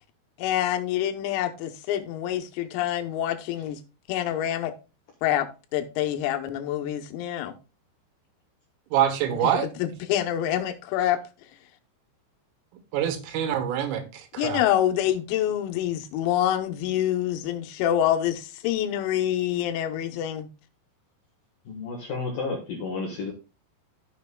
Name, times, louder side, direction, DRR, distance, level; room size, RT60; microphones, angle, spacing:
voice 1, 0.4-3.8 4.1-4.7 5.2-5.5 5.7-7.6 9.4-11.2 14.4-20.5, left 11 dB, 85° left, 3.6 m, -26 dB
voice 2, 8.9-9.7 12.9-14.6, right 10 dB, 80° right, 3.8 m, -25 dB
voice 3, 21.7-23.3, left 4 dB, 70° left, 2.1 m, -31 dB
14.0 x 6.7 x 2.2 m
omnidirectional pair, 5.9 m